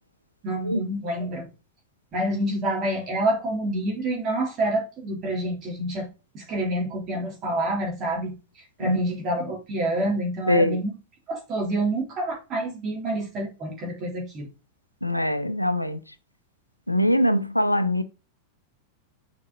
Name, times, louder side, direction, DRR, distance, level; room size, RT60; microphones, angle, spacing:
voice 1, 0.4-1.5 2.1-6.1 6.3-11.0 11.3-14.5, right 1 dB, 30° right, 3.5 m, -28 dB
voice 2, 10.5-10.8 15.0-16.0 16.9-18.0, left 1 dB, 90° left, 0.6 m, -22 dB
6.6 x 5.0 x 4.0 m
figure-of-eight pair, 90°, 0 cm